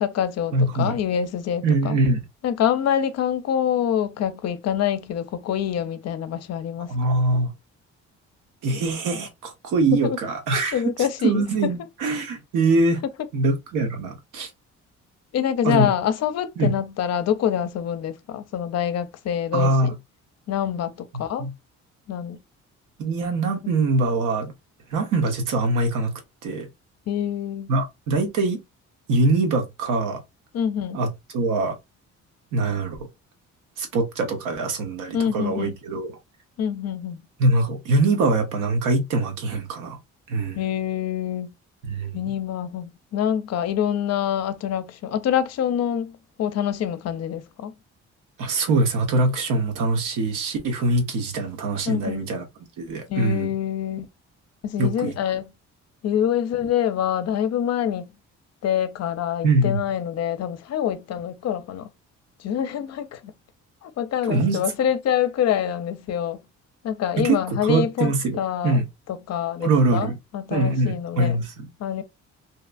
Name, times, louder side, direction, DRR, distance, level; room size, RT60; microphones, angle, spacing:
voice 1, 0.0-2.0 2.4-6.9 10.0-10.2 10.5-11.4 15.3-19.9 20.5-21.4 22.1-22.4 27.1-27.7 30.5-31.0 35.1-35.8 36.6-37.2 40.6-41.5 42.1-47.7 51.9-52.3 53.1-54.1 54.6-55.5 56.0-58.1 58.6-61.9 62.4-63.3 63.8-66.4 66.8-68.1 68.4-68.8 69.1-71.4 71.8-72.0, left 9 dB, 60° left, 0.5 m, -26 dB
voice 2, 0.5-1.0 1.6-2.2 6.9-7.5 8.6-10.8 11.2-13.0 13.3-14.5 15.6-15.9 16.6-16.7 19.5-19.9 21.1-21.5 23.0-24.5 24.9-26.1 26.4-26.7 27.7-28.6 29.1-30.2 30.9-31.8 32.5-33.0 33.8-36.2 37.4-40.0 40.3-40.6 41.9-42.2 48.4-52.4 52.8-53.5 54.8-55.1 59.4-59.8 64.3-64.6 67.2-68.8 69.6-70.2 70.5-71.7, right 2 dB, 90° right, 0.8 m, -23 dB
2.7 x 2.3 x 2.4 m
cardioid pair, 90°, 30 cm